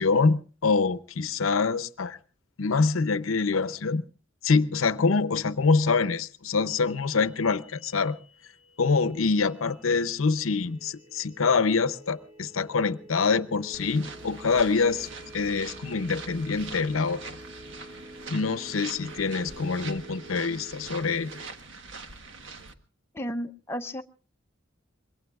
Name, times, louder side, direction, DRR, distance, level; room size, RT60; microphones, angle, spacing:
voice 1, 0.0-2.2 2.6-4.0 4.4-8.2 8.8-15.1 15.3-17.4 18.3-21.3, left 4 dB, 85° left, 0.7 m, -25 dB
sound 1, 6.7-21.5, right 1 dB, 40° right, 1.8 m, -49 dB
sound 2, 13.7-22.7, right 4 dB, 65° right, 1.4 m, -43 dB
voice 2, 23.1-24.0, equal, 10° left, 0.7 m, -33 dB
25.5 x 22.0 x 2.4 m
head